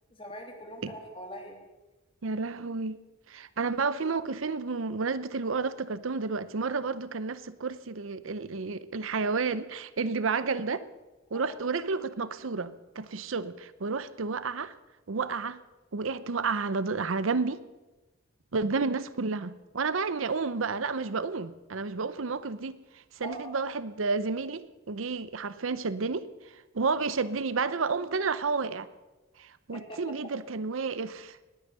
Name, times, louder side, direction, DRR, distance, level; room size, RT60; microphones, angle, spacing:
voice 1, 0.1-1.6 11.3-11.6 23.2-23.5 29.7-30.0, equal, 25° left, 2 dB, 2.7 m, -42 dB
voice 2, 2.2-3.0 3.3-10.8 11.3-14.7 15.1-15.6 15.9-17.6 18.5-22.7 23.2-26.3 26.7-28.9 29.4-31.4, right 4 dB, 80° right, 15 dB, 0.7 m, -31 dB
19.5 x 9.8 x 6.6 m, 1.1 s
head